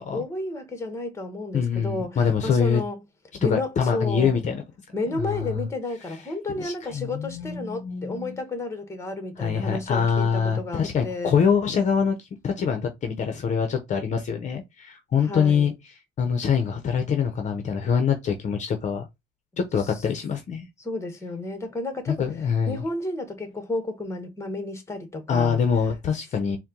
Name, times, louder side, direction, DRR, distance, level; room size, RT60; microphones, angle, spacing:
voice 1, 0.1-3.0 3.4-4.4 4.9-11.3 15.2-15.7 19.8-20.1 20.8-22.2 22.7-25.6 26.5-26.6, left 2 dB, 15° left, 1.1 m, -32 dB
voice 2, 1.5-2.8 3.4-4.6 5.1-5.7 6.6-8.4 9.4-15.7 16.2-19.1 19.6-20.7 22.1-22.8 25.3-26.6, left 6 dB, 45° left, 0.8 m, -24 dB
4.2 x 2.2 x 3.7 m
cardioid pair, 110°, 17 cm